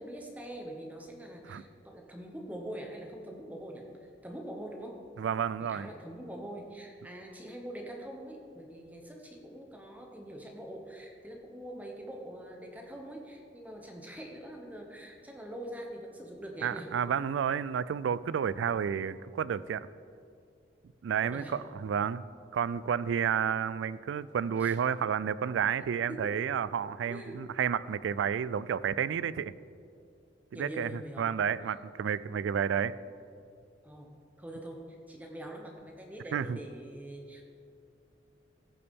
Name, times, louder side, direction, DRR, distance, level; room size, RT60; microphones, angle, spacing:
voice 1, 0.0-5.0 5.7-16.9 21.2-21.6 24.6-24.8 26.1-26.3 27.1-27.4 30.5-31.4 31.7-31.8 33.8-37.4, right 1 dB, 10° right, 1 dB, 0.8 m, -44 dB
voice 2, 5.2-5.9 16.6-19.9 21.0-22.2 22.5-29.5 30.5-32.9 36.3-36.6, right 7 dB, 75° right, 17 dB, 0.3 m, -31 dB
15.0 x 6.9 x 3.5 m, 2.3 s
head